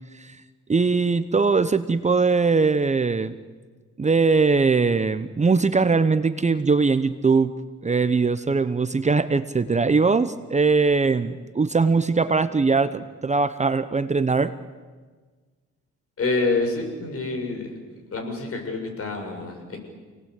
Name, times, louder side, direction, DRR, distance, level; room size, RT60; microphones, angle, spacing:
voice 1, 0.7-3.3 4.0-7.5 7.8-14.5, right 4 dB, 25° right, 12 dB, 0.9 m, -21 dB
voice 2, 16.2-17.8 18.1-19.8, left 3 dB, 50° left, 3 dB, 7.1 m, -27 dB
28.5 x 19.0 x 8.3 m, 1.4 s
cardioid pair, 90°, 30 cm